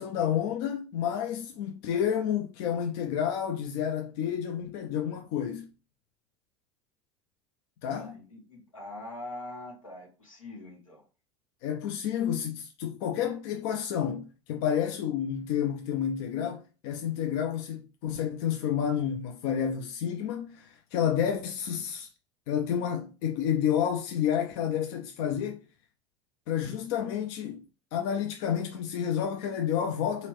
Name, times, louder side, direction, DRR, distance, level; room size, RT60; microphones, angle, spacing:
voice 1, 0.0-5.7 7.8-8.1 11.6-22.1 22.5-25.6 26.5-27.6 27.9-30.3, left 9 dB, 55° left, 0.6 m, -30 dB
voice 2, 8.0-11.0, left 2 dB, 90° left, 1.8 m, -43 dB
4.2 x 3.9 x 3.2 m
figure-of-eight pair, 75°, 17 cm